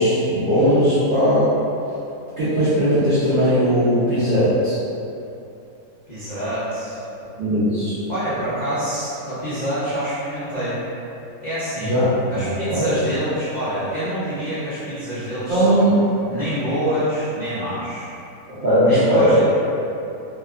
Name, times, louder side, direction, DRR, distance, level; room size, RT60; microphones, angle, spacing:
voice 1, 0.0-1.5 2.4-4.7 7.4-8.0 11.8-12.9 15.5-16.0 18.5-19.4, equal, 85° right, -13 dB, 0.4 m, -18 dB
voice 2, 6.1-7.0 8.1-10.8 11.4-12.0 12.3-15.8 16.3-18.1 18.8-19.4, equal, 75° left, -14 dB, 0.4 m, -26 dB
2.8 x 2.3 x 2.3 m, 2.8 s
omnidirectional pair, 1.9 m